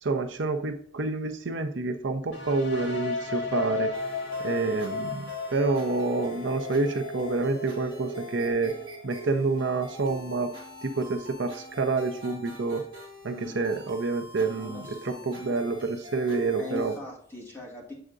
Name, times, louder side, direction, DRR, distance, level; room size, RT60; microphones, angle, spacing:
voice 1, 0.0-3.9 4.4-8.7 9.0-10.5 10.8-12.8 13.2-16.9, right 3 dB, 75° right, 5 dB, 0.7 m, -28 dB
sound 1, 2.3-10.1, left 3 dB, 70° left, 1.6 m, -35 dB
sound 2, 3.9-17.0, left 2 dB, 25° right, 1.9 m, -45 dB
voice 2, 13.3-13.6 14.5-15.4 16.6-17.9, left 2 dB, 10° left, -4 dB, 1.9 m, -41 dB
7.8 x 4.9 x 2.5 m, 0.63 s
head